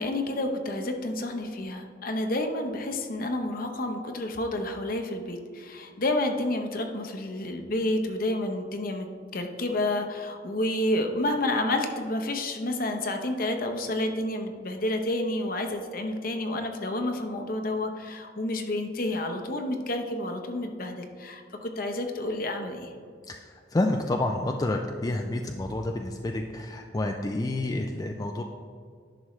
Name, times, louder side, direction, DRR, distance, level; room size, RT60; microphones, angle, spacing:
voice 1, 0.0-9.1 9.3-22.9, left 1 dB, 50° left, 5 dB, 0.8 m, -30 dB
voice 2, 23.3-28.4, left 2 dB, 20° left, 3 dB, 0.4 m, -29 dB
11.0 x 6.3 x 3.2 m, 2.1 s
head